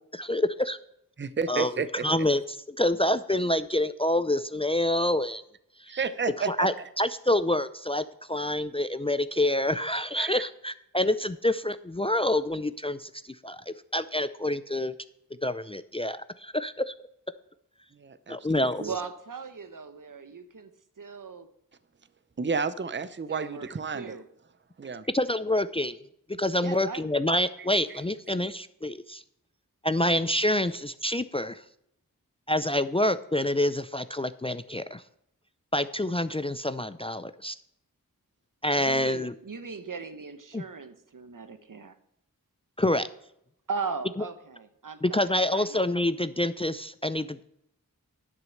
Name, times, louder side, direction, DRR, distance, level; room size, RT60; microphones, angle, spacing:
voice 1, 0.1-0.8 1.5-1.7 2.0-2.4 2.7-5.4 5.8-6.0 6.5-14.9 15.4-16.9 18.3-18.8 25.1-29.2 29.8-31.6 32.5-35.0 35.7-37.6 38.6-39.3 40.5-40.6 42.8-43.1 45.0-47.4, left 1 dB, 15° left, 14 dB, 0.4 m, -27 dB
voice 2, 1.2-2.1 5.9-6.7 10.2-10.4 17.9-18.4 18.8-19.0 22.4-24.2 24.8-25.1 27.6-28.0, right 5 dB, 30° right, 14 dB, 0.6 m, -31 dB
voice 3, 18.8-20.7 21.0-21.5 23.3-23.7 23.9-24.2 26.6-27.1 30.5-30.7 38.7-42.0 43.7-45.9, right 5 dB, 65° right, 9 dB, 1.1 m, -38 dB
10.5 x 6.2 x 6.4 m, 0.76 s
wide cardioid pair, 40°, 35 cm